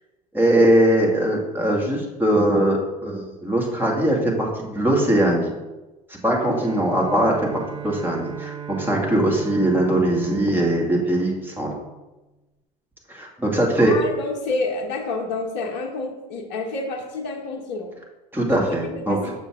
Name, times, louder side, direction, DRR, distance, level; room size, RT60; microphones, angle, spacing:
voice 1, 0.3-5.5 6.2-11.7 13.1-13.9 18.3-19.2, right 1 dB, 10° right, -2 dB, 2.1 m, -21 dB
Bowed string instrument, 6.3-11.9, right 7 dB, 30° right, 0.9 m, -37 dB
voice 2, 13.8-17.9 18.5-19.3, left 3 dB, 60° left, 2 dB, 1.1 m, -29 dB
6.7 x 6.2 x 3.6 m, 1.1 s
hypercardioid pair, 70°, 21 cm